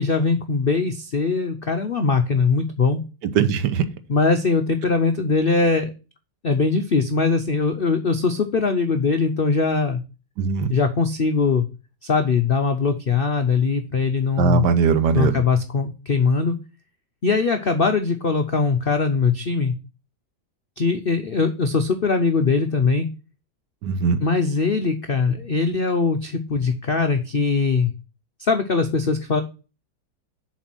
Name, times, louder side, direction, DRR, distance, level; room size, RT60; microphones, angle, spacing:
voice 1, 0.0-3.0 4.1-5.9 6.4-10.0 10.7-11.7 12.0-14.7 15.1-16.6 17.2-19.7 20.8-23.1 24.2-27.9 28.4-29.4, left 4 dB, 80° left, 7 dB, 0.5 m, -21 dB
voice 2, 3.3-3.8 10.4-10.7 14.4-15.4 23.8-24.2, right 6 dB, 70° right, 12 dB, 1.4 m, -20 dB
7.4 x 4.8 x 6.0 m, 0.32 s
omnidirectional pair, 2.0 m